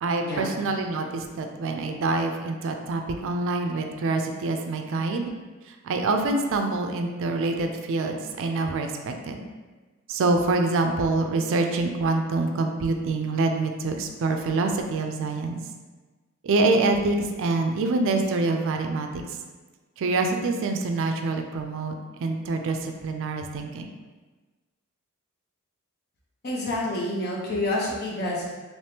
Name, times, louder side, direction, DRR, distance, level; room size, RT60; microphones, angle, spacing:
voice 1, 0.0-5.3 5.7-9.4 10.1-15.6 16.4-19.1 20.0-21.9 22.2-23.9, right 3 dB, 65° right, 4 dB, 0.4 m, -26 dB
voice 2, 26.4-28.5, left 1 dB, 50° left, -3 dB, 0.8 m, -28 dB
3.4 x 3.0 x 2.8 m, 1.3 s
head